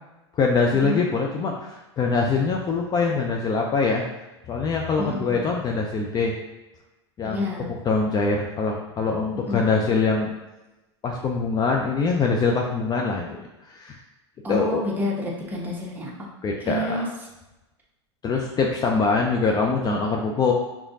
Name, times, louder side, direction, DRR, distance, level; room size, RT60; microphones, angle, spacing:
voice 1, 0.4-4.0 4.5-6.3 7.2-7.4 7.8-10.3 11.0-14.0 14.5-14.8 16.4-17.0 18.2-20.5, left 4 dB, 30° left, 1 dB, 0.5 m, -23 dB
voice 2, 5.0-5.3 7.2-7.7 9.3-9.6 14.4-16.3 16.6-17.1, left 1 dB, 10° right, -4 dB, 1.2 m, -29 dB
5.0 x 3.5 x 2.7 m, 1.0 s
hypercardioid pair, 100°, 15 cm